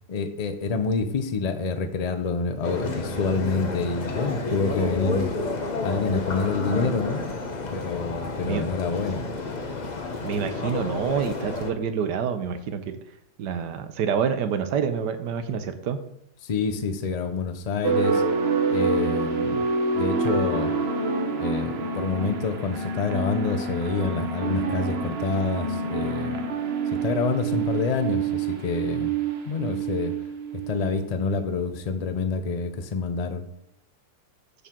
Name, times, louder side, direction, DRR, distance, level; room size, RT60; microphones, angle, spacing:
voice 1, 0.1-5.3 5.8-7.2 7.7-9.2 16.4-18.2 18.7-19.7 19.9-20.7 21.4-26.4 26.9-29.2 29.5-30.1 30.5-33.4, left 4 dB, 50° left, 8 dB, 0.4 m, -27 dB
sound 1, 2.6-11.7, left 3 dB, 35° left, 0.8 m, -30 dB
voice 2, 10.2-13.0 13.4-16.0, right 7 dB, 90° right, 8 dB, 1.5 m, -27 dB
sound 2, 17.8-31.2, right 4 dB, 45° right, 1.0 m, -27 dB
13.5 x 4.6 x 3.8 m, 0.77 s
omnidirectional pair, 1.7 m